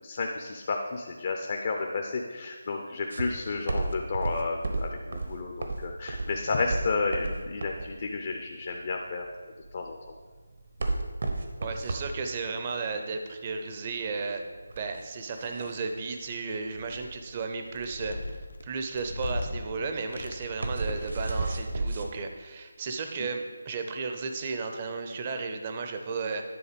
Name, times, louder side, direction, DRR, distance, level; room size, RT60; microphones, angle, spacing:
voice 1, 0.0-9.2 9.7-10.0, left 3 dB, 40° left, 2 dB, 0.6 m, -32 dB
sound 1, 3.1-22.1, right 2 dB, 60° right, 1.0 m, -34 dB
voice 2, 11.6-14.4 14.8-18.2 18.6-26.4, right 4 dB, 25° right, 5 dB, 0.6 m, -34 dB
sound 2, 16.6-17.2 17.7-19.6 20.0-20.7 21.0-21.7, left 2 dB, 80° left, 0.8 m, -38 dB
10.0 x 3.9 x 5.2 m, 1.5 s
figure-of-eight pair, 170°, 0 cm